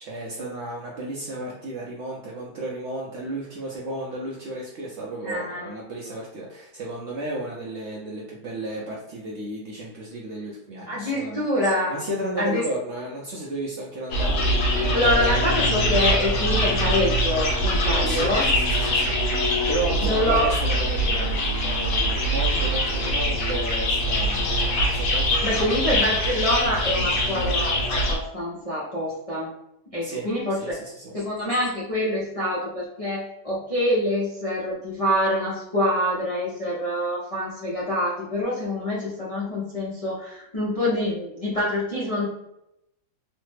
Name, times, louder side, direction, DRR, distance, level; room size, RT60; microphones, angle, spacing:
voice 1, 0.0-11.4 11.9-14.5 17.9-19.2 19.7-24.6 24.9-25.9 30.0-30.3 30.6-31.1, right 1 dB, 70° right, -2 dB, 0.6 m, -33 dB
voice 2, 5.2-5.7 10.9-11.9 12.4-12.6 14.9-18.4 20.0-20.5 25.4-29.5 29.9-30.8 31.1-42.3, left 1 dB, 60° left, -7 dB, 0.3 m, -26 dB
sound 1, 14.1-28.2, equal, 85° left, 1.3 m, -23 dB
3.1 x 2.1 x 3.2 m, 0.85 s
omnidirectional pair, 1.7 m